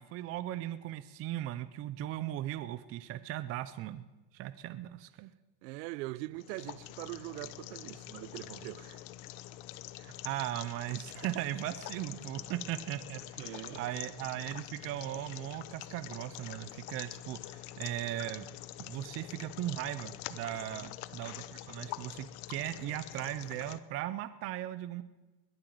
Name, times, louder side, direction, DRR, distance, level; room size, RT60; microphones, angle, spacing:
voice 1, 0.0-5.3 10.0-18.5 18.8-25.0, right 13 dB, 30° right, 0.5 m, -38 dB
voice 2, 5.6-9.0 12.4-12.5 13.4-13.8 20.8-20.9, right 19 dB, 80° right, 0.8 m, -42 dB
sound 1, 6.4-23.8, left 15 dB, 65° left, 0.9 m, -45 dB
21.0 x 8.9 x 7.7 m
supercardioid pair, 145°, 48 cm